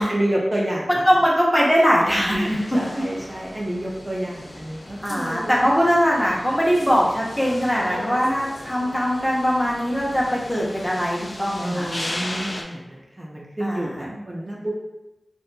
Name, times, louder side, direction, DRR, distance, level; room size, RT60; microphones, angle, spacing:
voice 1, 0.0-1.0 2.3-5.6 11.6-14.7, right 1 dB, 25° right, -3 dB, 0.4 m, -29 dB
voice 2, 0.9-2.6 5.0-11.9 13.6-14.2, equal, 15° left, -5 dB, 0.7 m, -21 dB
sound 1, 2.4-12.6, left 1 dB, 45° left, 0.3 m, -37 dB
sound 2, 7.1-10.2, left 1 dB, 80° left, 0.7 m, -41 dB
2.8 x 2.5 x 2.2 m, 1.0 s
wide cardioid pair, 80°, 0 cm